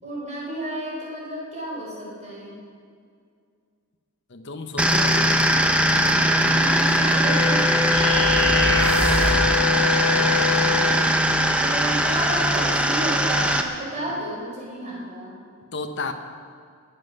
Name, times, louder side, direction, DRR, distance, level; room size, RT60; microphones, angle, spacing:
voice 1, 0.0-2.5 6.4-7.8 11.2-15.3, right 1 dB, 30° right, -4 dB, 4.6 m, -32 dB
voice 2, 4.3-5.4 12.1-12.2 15.7-16.1, left 3 dB, 55° left, 7 dB, 1.0 m, -32 dB
sound 1, 4.8-13.6, equal, 5° right, 0.8 m, -20 dB
sound 2, 7.2-11.2, left 8 dB, 80° left, 1.2 m, -26 dB
sound 3, 7.9-9.5, right 2 dB, 65° right, 2.5 m, -25 dB
22.0 x 7.7 x 6.6 m, 2.2 s
head